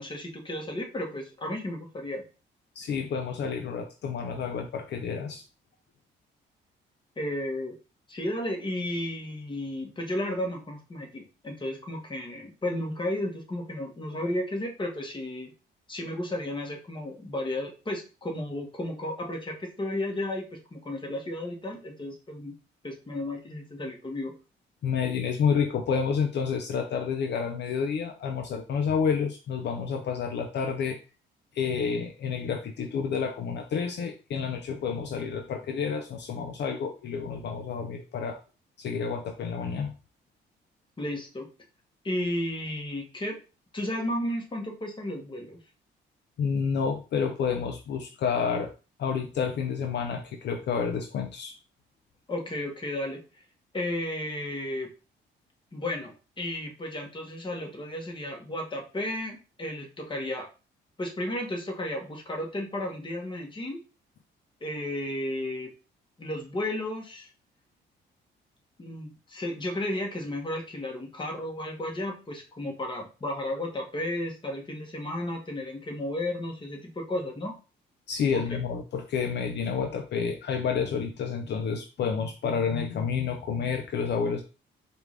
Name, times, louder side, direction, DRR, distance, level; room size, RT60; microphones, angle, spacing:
voice 1, 0.0-2.2 7.2-7.7 8.1-15.5 15.9-22.5 22.8-24.3 41.0-41.5 42.0-43.4 43.7-45.6 52.3-53.2 53.7-54.9 55.7-60.5 61.0-63.8 64.6-65.7 66.2-67.3 68.8-77.5 78.3-78.6, left 1 dB, 25° left, 1 dB, 1.3 m, -33 dB
voice 2, 2.8-5.4 24.8-31.0 31.5-38.4 38.8-39.9 46.4-48.7 49.0-51.5 78.1-84.4, left 6 dB, 60° left, 4 dB, 0.6 m, -29 dB
4.7 x 2.5 x 3.3 m, 0.33 s
cardioid pair, 90°, 20 cm